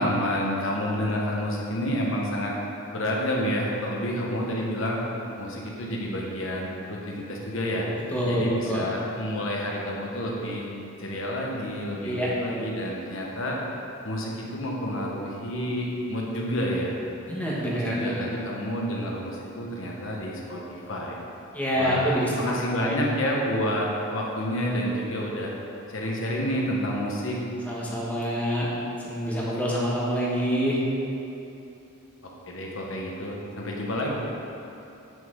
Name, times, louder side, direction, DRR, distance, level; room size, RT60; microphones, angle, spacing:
voice 1, 0.0-2.5 2.9-5.0 5.4-7.9 8.2-10.7 11.0-13.6 14.0-17.0 17.7-21.2 21.8-25.5 25.9-27.4 32.2-34.1, equal, 65° left, -2 dB, 1.3 m, -29 dB
voice 2, 8.1-8.9 12.0-12.3 17.3-18.3 21.5-22.3 22.8-23.0 27.7-28.7 29.0-30.8, equal, 5° left, -6 dB, 1.3 m, -26 dB
8.6 x 6.3 x 3.8 m, 2.9 s
head